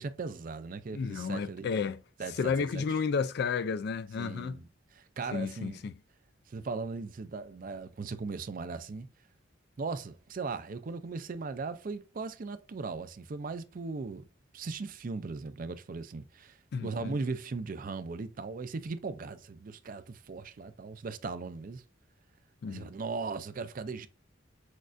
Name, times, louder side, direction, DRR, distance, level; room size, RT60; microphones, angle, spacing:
voice 1, 0.0-1.9 2.2-2.9 4.2-5.8 6.5-9.1 9.8-14.3 14.5-21.8 22.7-24.1, right 4 dB, 45° right, 0.4 m, -38 dB
voice 2, 0.9-2.0 2.4-4.6 5.3-5.9 16.7-17.2 22.6-22.9, left 5 dB, 55° left, 0.3 m, -32 dB
6.3 x 2.5 x 2.5 m
head